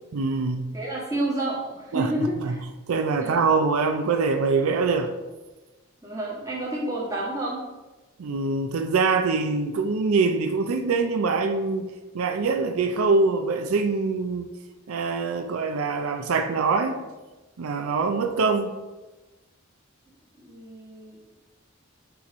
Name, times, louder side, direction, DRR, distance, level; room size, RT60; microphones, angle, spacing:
voice 1, 0.1-0.8 1.9-2.1 2.4-2.5 2.9-5.1 8.2-14.5 14.9-17.0 17.6-18.8, right 4 dB, 85° right, 7 dB, 0.5 m, -24 dB
voice 2, 0.7-2.6 3.2-3.4 6.0-7.6 20.4-21.4, right 1 dB, 15° right, -5 dB, 1.5 m, -30 dB
8.2 x 3.1 x 4.2 m, 1.1 s
head